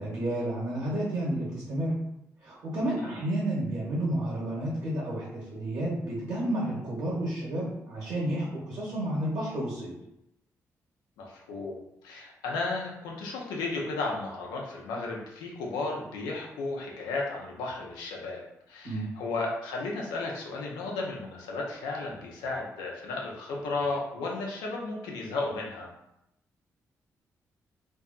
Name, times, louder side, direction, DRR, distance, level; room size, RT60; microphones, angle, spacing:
voice 1, 0.0-1.9 2.4-9.9 18.8-19.1, right 1 dB, 65° right, -6 dB, 1.2 m, -31 dB
voice 2, 11.2-25.9, left 3 dB, 90° left, -1 dB, 0.5 m, -34 dB
2.6 x 2.5 x 2.3 m, 0.83 s
supercardioid pair, 45°, 7 cm